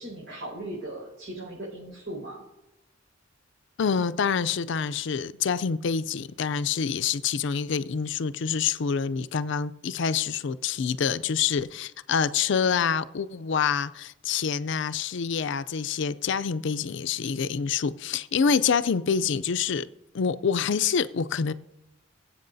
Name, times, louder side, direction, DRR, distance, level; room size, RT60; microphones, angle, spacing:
voice 1, 0.0-2.4, right 1 dB, 75° right, 5.0 m, -38 dB
voice 2, 3.8-19.8 20.1-21.5, left 6 dB, 65° left, 0.4 m, -26 dB
23.0 x 8.1 x 2.7 m
head